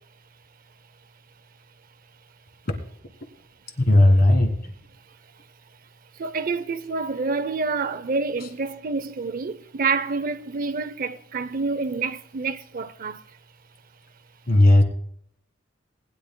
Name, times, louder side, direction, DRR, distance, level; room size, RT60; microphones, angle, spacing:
voice 1, 3.8-4.6 8.4-8.5 14.5-14.8, left 1 dB, 50° left, 2.0 m, -16 dB
voice 2, 6.2-13.2, right 4 dB, 45° right, 0.5 m, -28 dB
20.5 x 10.5 x 2.2 m
head